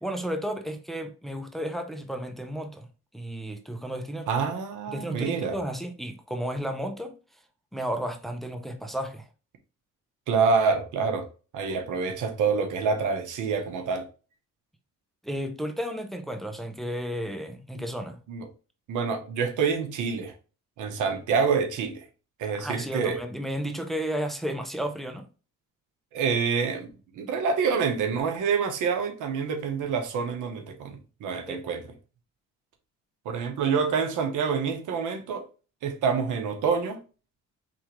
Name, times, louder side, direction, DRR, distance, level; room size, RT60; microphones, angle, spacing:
voice 1, 0.0-2.9 3.1-4.3 4.9-7.2 7.7-9.3 15.2-18.2 22.5-25.3 31.5-31.6, equal, ahead, 0.7 m, -33 dB
voice 2, 4.3-5.5 10.3-11.3 11.5-14.1 17.7-17.9 18.3-18.5 18.9-20.3 20.8-22.0 22.4-23.2 26.1-26.9 27.1-31.8 33.2-35.4 35.8-37.0, right 5 dB, 80° right, 1.1 m, -27 dB
4.6 x 3.4 x 3.1 m
cardioid pair, 90°, 30 cm